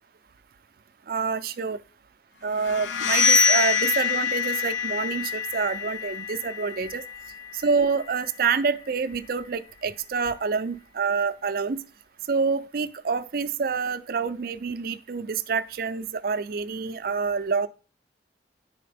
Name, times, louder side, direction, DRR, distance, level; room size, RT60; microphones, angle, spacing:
voice 1, 1.1-1.8 2.4-7.0 7.5-11.8 12.3-17.7, right 5 dB, 50° right, 12 dB, 0.4 m, -27 dB
sound 1, 2.6-8.3, left 6 dB, 80° left, 0.4 m, -25 dB
10.0 x 4.3 x 3.4 m, 0.38 s
head